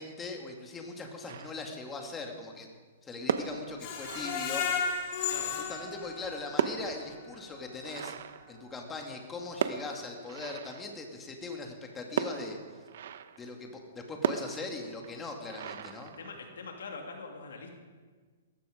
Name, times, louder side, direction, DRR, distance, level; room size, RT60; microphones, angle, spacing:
voice 1, 0.0-2.7 3.0-4.7 5.2-5.3 5.7-8.2 8.5-12.8 13.4-16.1, left 3 dB, 15° left, 2 dB, 2.3 m, -40 dB
sound 1, 1.3-2.0 3.1-5.0 6.0-9.2 9.6-11.2 12.2-13.6 14.2-16.8, right 8 dB, 65° right, 0.9 m, -37 dB
Screech, 3.8-6.8 7.2-7.3 7.7-7.8, left 6 dB, 45° left, 3.5 m, -34 dB
voice 2, 5.3-5.6 16.2-17.7, left 4 dB, 85° left, 2 dB, 2.8 m, -43 dB
18.5 x 15.0 x 5.2 m, 1.5 s
hypercardioid pair, 150°, 0 cm